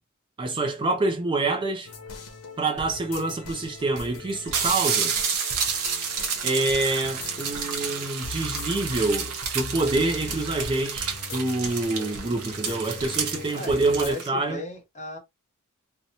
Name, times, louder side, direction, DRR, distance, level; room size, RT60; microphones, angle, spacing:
voice 1, 0.4-1.9 2.6-5.2 6.4-14.6, right 2 dB, 20° right, 0.3 m, -26 dB
sound 1, 1.9-14.1, left 3 dB, 85° left, 0.8 m, -40 dB
sound 2, 3.1-3.2 4.0-4.1 4.3-14.3, right 6 dB, 80° right, 0.8 m, -30 dB
voice 2, 7.0-8.1 13.5-15.2, equal, 30° left, 1.0 m, -38 dB
2.8 x 2.1 x 2.6 m
head